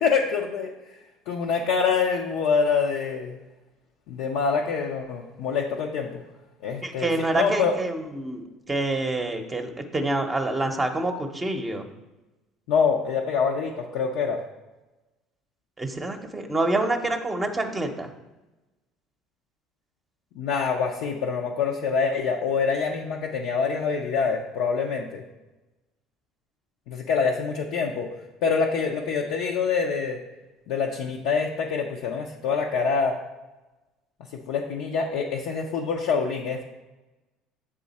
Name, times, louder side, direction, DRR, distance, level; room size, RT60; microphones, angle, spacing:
voice 1, 0.0-0.7 1.3-3.4 4.1-6.2 6.6-7.8 12.7-14.4 20.4-25.2 26.9-28.1 28.4-30.2 30.7-33.2 34.5-36.6, left 5 dB, 75° left, -1 dB, 0.5 m, -25 dB
voice 2, 6.8-11.9 15.8-18.1, right 2 dB, 20° right, 4 dB, 0.7 m, -27 dB
7.0 x 3.7 x 4.1 m, 1.1 s
supercardioid pair, 80°, 0 cm